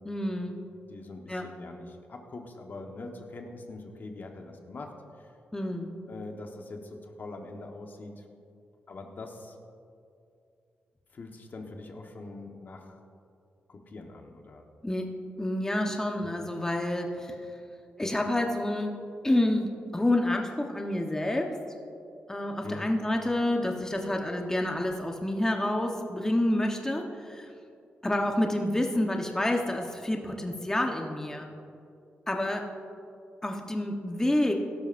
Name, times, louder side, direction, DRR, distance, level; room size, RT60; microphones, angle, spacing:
voice 1, 0.0-0.6 1.3-1.4 5.5-5.9 14.8-15.1 15.4-17.4 18.0-18.9 19.2-21.6 22.3-27.5 28.0-31.5 32.3-32.7 33.4-34.6, left 1 dB, 15° left, 2 dB, 1.1 m, -28 dB
voice 2, 0.9-5.4 6.1-8.2 8.9-9.6 11.1-13.0 13.7-14.6 22.6-22.9, left 2 dB, 50° left, 3 dB, 1.2 m, -43 dB
16.5 x 12.0 x 2.6 m, 2.5 s
cardioid pair, 75°, 4 cm